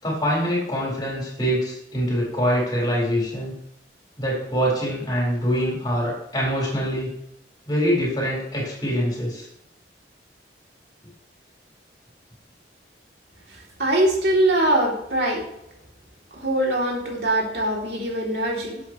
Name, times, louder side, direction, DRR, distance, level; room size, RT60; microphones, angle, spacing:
voice 1, 0.0-3.5 4.2-7.1 7.7-9.5, equal, 25° left, -4 dB, 4.5 m, -24 dB
voice 2, 13.8-15.4 16.3-18.8, right 1 dB, 60° right, -2 dB, 3.1 m, -22 dB
12.0 x 8.2 x 3.2 m, 0.76 s
head